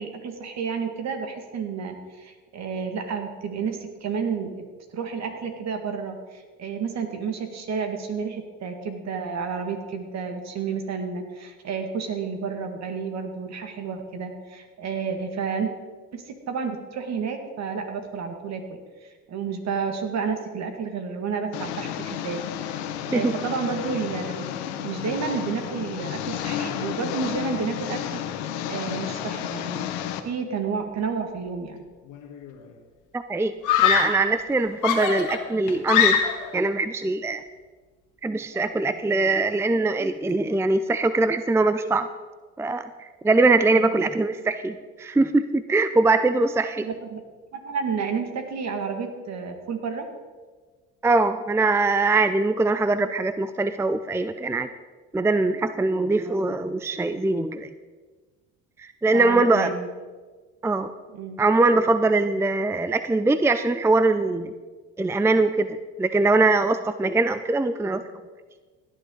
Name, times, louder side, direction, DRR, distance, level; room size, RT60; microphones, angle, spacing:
voice 1, 0.0-4.7 4.9-15.7 16.1-24.5 24.8-29.9 30.2-31.8 43.7-44.0 46.8-47.2 47.5-50.1 59.1-59.9 61.1-61.4, right 5 dB, 55° right, 5 dB, 2.1 m, -31 dB
Engine, 21.5-30.2, left 10 dB, 90° left, 1.0 m, -32 dB
Screaming, 32.1-32.6 33.6-34.3 34.8-36.6, left 8 dB, 70° left, 1.5 m, -22 dB
voice 2, 33.1-33.5 33.8-36.2 36.5-37.4 38.2-42.1 42.6-46.9 51.0-54.7 55.1-57.7 58.8-59.7 60.6-60.9 61.4-64.5 65.0-68.0, right 3 dB, 10° right, 11 dB, 0.5 m, -22 dB
17.0 x 10.0 x 3.9 m, 1.4 s
supercardioid pair, 70°, 32 cm